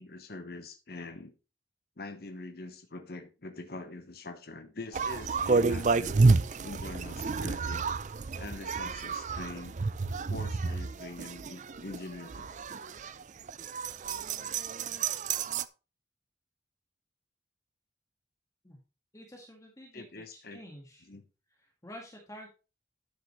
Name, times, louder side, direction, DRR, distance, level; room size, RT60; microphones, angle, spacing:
voice 1, 0.0-1.3 2.0-6.2 6.6-7.9 8.4-9.8 10.3-12.5 19.9-20.6 21.1-21.2, left 2 dB, 60° left, 1.0 m, -44 dB
sound 1, 4.9-15.6, right 4 dB, 45° right, 0.5 m, -30 dB
voice 2, 19.1-20.0 20.3-21.1 21.6-22.5, equal, 20° left, 1.7 m, -49 dB
12.0 x 6.6 x 3.1 m
head